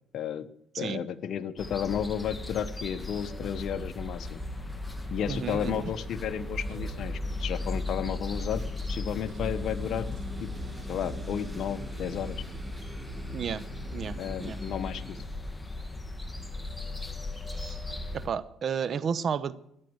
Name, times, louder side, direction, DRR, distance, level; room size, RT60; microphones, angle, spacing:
voice 1, 0.1-0.5 0.7-4.4 5.1-8.6 8.9-10.1 10.4-10.5 10.9-12.4 14.2-15.2, left 9 dB, 60° left, 11 dB, 1.1 m, -33 dB
sound 1, 1.6-18.3, left 2 dB, 10° left, 1.8 m, -37 dB
sound 2, 4.3-15.2, equal, 10° right, 2.4 m, -43 dB
sound 3, 4.3-14.5, right 6 dB, 65° right, 2.0 m, -51 dB
voice 2, 5.3-5.9 13.3-13.6 13.9-14.6 17.5-17.8 18.1-19.6, right 7 dB, 50° right, 16 dB, 0.9 m, -32 dB
14.5 x 10.5 x 8.0 m, 0.74 s
cardioid pair, 85°, 0 cm